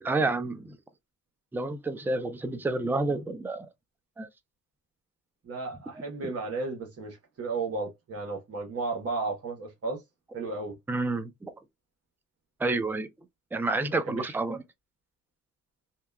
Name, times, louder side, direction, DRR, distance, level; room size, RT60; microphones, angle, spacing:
voice 1, 0.0-0.8 1.5-3.7 4.2-4.3 10.9-11.5 12.6-13.1 13.5-14.6, right 2 dB, 5° right, 0.4 m, -29 dB
voice 2, 5.4-10.0 10.3-10.8 14.1-14.3, right 3 dB, 50° right, 1.2 m, -34 dB
2.8 x 2.3 x 2.2 m
cardioid pair, 90°, 30 cm